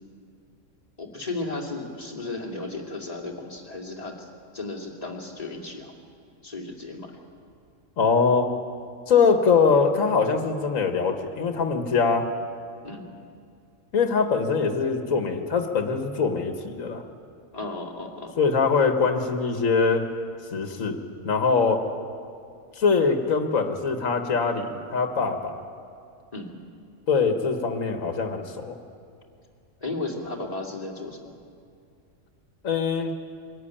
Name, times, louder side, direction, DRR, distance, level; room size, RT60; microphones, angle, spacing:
voice 1, 1.0-4.3 4.5-5.9 6.4-7.1 12.8-13.2 17.5-18.4 26.3-26.6 29.8-31.3, left 2 dB, 30° left, 0 dB, 2.8 m, -34 dB
voice 2, 8.0-8.5 9.1-12.3 13.9-17.0 18.4-20.1 20.5-21.0 21.2-21.8 22.8-25.6 27.1-28.8 32.6-33.1, left 5 dB, 75° left, 5 dB, 1.9 m, -23 dB
23.5 x 14.5 x 10.0 m, 2.3 s
omnidirectional pair, 1.4 m